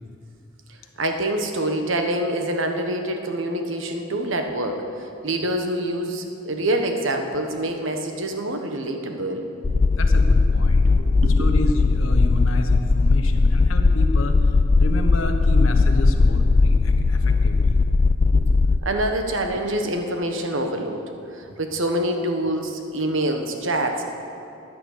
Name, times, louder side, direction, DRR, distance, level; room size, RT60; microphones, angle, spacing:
voice 1, 0.7-9.5 11.0-11.5 18.3-18.4 18.8-24.1, right 1 dB, 70° right, 4 dB, 1.3 m, -26 dB
sound 1, 9.6-18.8, left 3 dB, 35° left, 0.3 m, -18 dB
voice 2, 10.0-10.9 11.4-14.4 14.8-17.8, left 1 dB, 85° left, 5 dB, 1.3 m, -29 dB
15.0 x 10.0 x 6.7 m, 2.8 s
head